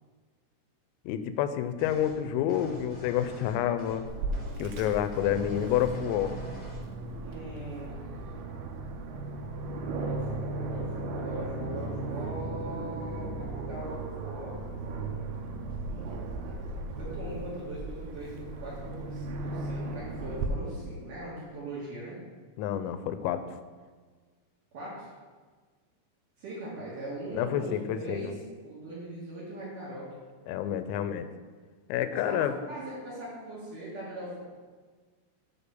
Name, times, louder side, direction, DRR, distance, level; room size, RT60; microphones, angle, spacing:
voice 1, 1.1-4.1 4.6-6.3 22.6-23.5 27.3-28.3 30.5-31.3 31.9-32.5, left 10 dB, 90° left, 11 dB, 3.2 m, -29 dB
sound 1, 1.8-2.1 2.5-4.0 4.3-4.5 4.8-6.8, right 1 dB, 15° left, 1.7 m, -45 dB
Aircraft, 4.1-20.5, right 2 dB, 80° right, 2.8 m, -36 dB
voice 2, 7.2-7.9 9.9-14.5 17.0-22.2 24.7-25.1 26.4-28.4 28.6-30.1 32.1-34.4, right 1 dB, 55° right, -8 dB, 2.5 m, -40 dB
9.1 x 4.3 x 6.9 m, 1.5 s
omnidirectional pair, 5.9 m